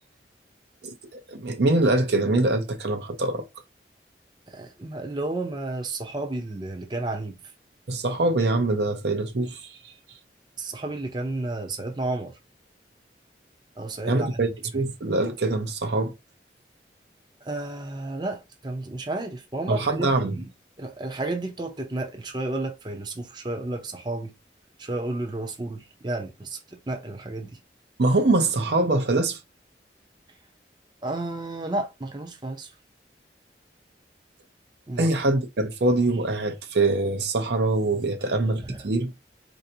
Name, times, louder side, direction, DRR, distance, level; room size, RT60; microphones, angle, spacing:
voice 1, 0.8-3.4 7.9-9.9 14.1-16.1 19.7-20.4 28.0-29.4 35.0-39.1, right 2 dB, 70° right, 0.7 m, -24 dB
voice 2, 4.5-7.4 10.6-12.3 13.8-14.5 14.7-14.8 17.4-20.5 20.8-24.3 24.8-27.6 31.0-32.7 34.9-35.1 38.2-38.4 38.6-38.8, right 2 dB, 25° right, 0.6 m, -32 dB
4.3 x 2.7 x 2.7 m
head